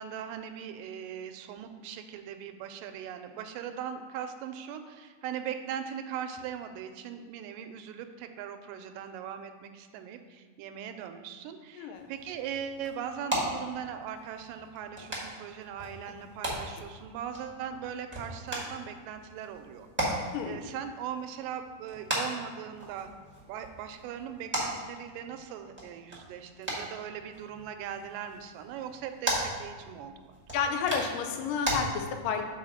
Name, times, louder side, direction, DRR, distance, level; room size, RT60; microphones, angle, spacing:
voice 1, 0.0-23.1 23.5-30.4, right 8 dB, 85° right, 8 dB, 2.1 m, -40 dB
sound 1, 11.9-31.8, right 1 dB, 15° right, 0.4 m, -38 dB
voice 2, 30.5-32.4, left 6 dB, 85° left, 5 dB, 2.3 m, -31 dB
5.7 x 4.6 x 6.1 m, 1.4 s
omnidirectional pair, 3.9 m